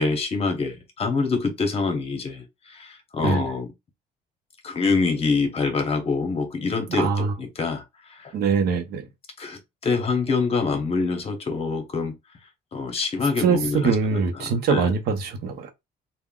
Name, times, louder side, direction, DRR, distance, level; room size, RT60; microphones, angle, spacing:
voice 1, 0.0-3.7 4.6-8.3 9.4-12.2 12.7-14.9, left 4 dB, 35° left, 0.9 m, -26 dB
voice 2, 6.9-7.3 8.3-9.1 13.4-15.7, right 5 dB, 70° right, 0.7 m, -23 dB
3.5 x 2.1 x 2.3 m
cardioid pair, 110°, 17 cm